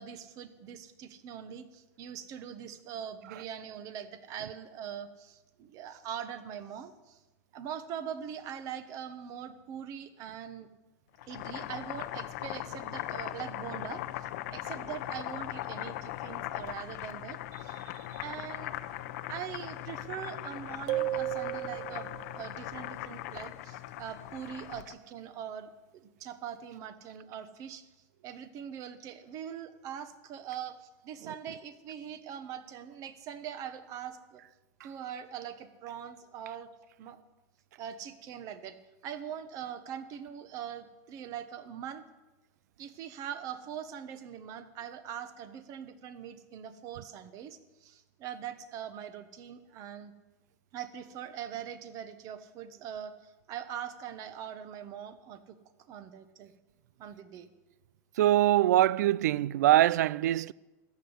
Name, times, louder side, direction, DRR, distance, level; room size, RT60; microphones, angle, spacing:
voice 1, 0.0-7.2 7.5-10.7 11.3-17.7 18.2-18.7 19.3-22.1 22.3-27.8 28.2-34.4 34.8-36.7 37.0-37.2 37.8-38.8 39.0-42.0 42.8-50.1 50.7-55.6 55.9-56.5 57.0-57.5, right 9 dB, 40° right, 1.3 m, -42 dB
Boiling, 11.1-25.0, left 14 dB, 65° left, 0.8 m, -39 dB
sound 1, 20.9-22.4, right 14 dB, 65° right, 0.7 m, -33 dB
voice 2, 58.2-60.5, right 14 dB, 90° right, 0.4 m, -23 dB
13.5 x 8.3 x 9.7 m
supercardioid pair, 145°, 9 cm